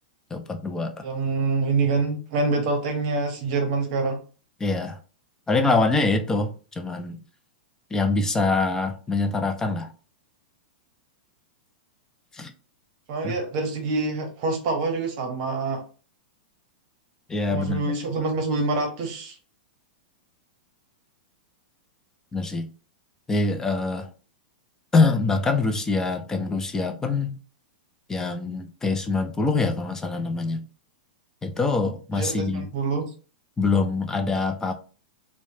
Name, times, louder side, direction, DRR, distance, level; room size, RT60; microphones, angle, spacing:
voice 1, 0.3-0.9 4.6-5.0 5.5-7.2 7.9-9.9 12.3-12.5 13.2-13.4 17.3-17.9 22.3-22.7 23.3-24.1 24.9-27.3 28.1-30.6 31.4-32.7 33.6-34.7, left 3 dB, 10° left, 0.4 m, -24 dB
voice 2, 1.0-4.2 13.1-15.8 17.5-19.3 32.1-33.0, right 3 dB, 50° right, 0.9 m, -26 dB
2.9 x 2.1 x 2.7 m
hypercardioid pair, 125°, 5 cm